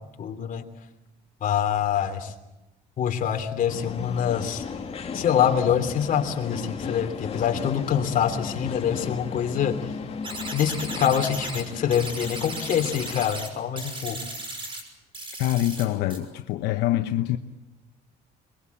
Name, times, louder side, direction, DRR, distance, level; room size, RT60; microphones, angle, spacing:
voice 1, 0.2-0.6 1.4-2.3 3.0-4.6 5.1-9.8 10.5-14.2, left 8 dB, 55° left, 3.1 m, -25 dB
sound 1, 3.7-13.3, left 5 dB, 35° left, 2.5 m, -36 dB
sound 2, 10.2-11.6 11.9-13.5 13.8-14.8 15.1-15.8 16.1-16.2, right 2 dB, 30° right, 6.1 m, -36 dB
voice 2, 15.4-17.4, left 14 dB, 85° left, 0.9 m, -25 dB
22.5 x 22.5 x 8.4 m
cardioid pair, 110°, 17 cm